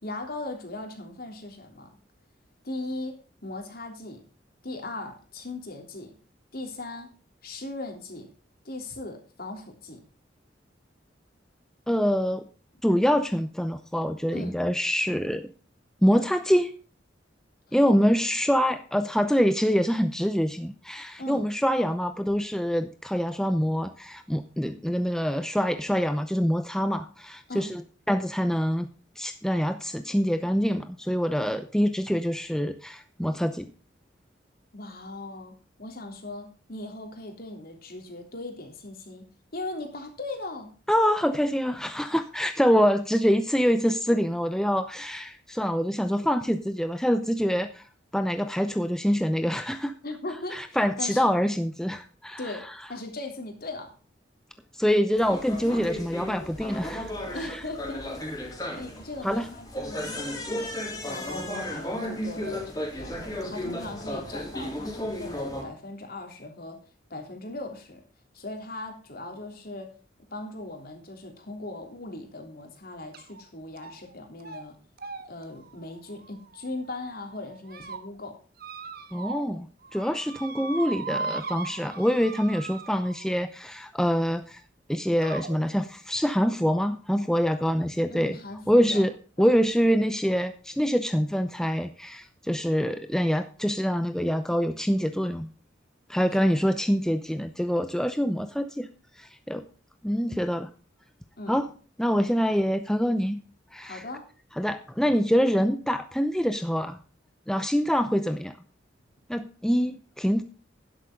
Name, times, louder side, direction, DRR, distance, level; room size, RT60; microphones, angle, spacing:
voice 1, 0.0-2.0 2.6-4.2 4.6-6.2 6.5-7.1 7.4-8.3 8.6-10.0 14.3-14.6 21.2-21.5 27.5-27.7 34.7-39.2 39.5-40.7 50.0-51.3 52.4-53.9 57.3-60.7 61.0-63.2 63.5-66.8 67.1-68.0 68.3-69.9 70.3-74.8 75.3-78.4 88.1-89.0 89.4-89.5 96.4-96.6 101.4-101.6 103.8-104.3, left 2 dB, 50° left, 4 dB, 3.3 m, -39 dB
voice 2, 11.9-12.5 12.8-15.5 16.0-16.7 17.7-27.8 28.1-28.9 29.2-33.7 40.9-47.8 48.1-49.9 50.5-52.4 54.7-57.1 57.4-57.6 59.2-59.5 79.1-84.6 84.9-88.4 88.7-89.1 89.4-95.5 96.1-98.9 99.2-99.6 100.0-100.7 101.5-101.7 102.0-103.4 103.7-104.0 104.6-107.0 107.5-108.6 109.3-110.4, equal, 5° left, 9 dB, 0.7 m, -25 dB
sound 1, 55.1-65.6, left 1 dB, 20° left, 3.4 m, -34 dB
sound 2, 73.1-73.4 73.8-74.1 74.4-74.6 75.0-76.9 77.4-78.0 78.6-79.6 79.8-83.4 84.4-84.5 85.2-85.6, right 4 dB, 55° right, 1.6 m, -38 dB
12.0 x 11.0 x 3.8 m, 0.37 s
head